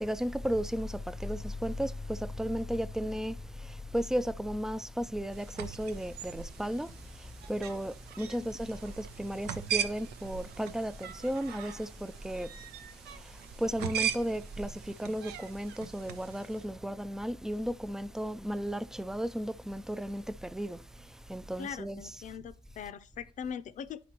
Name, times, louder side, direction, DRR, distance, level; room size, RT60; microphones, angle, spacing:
voice 1, 0.0-22.3, equal, 5° right, 0.3 m, -35 dB
sound 1, 5.3-16.7, right 8 dB, 80° right, 0.7 m, -40 dB
voice 2, 21.6-24.0, left 7 dB, 45° left, 0.5 m, -41 dB
10.0 x 4.1 x 2.9 m
cardioid pair, 110°, 17 cm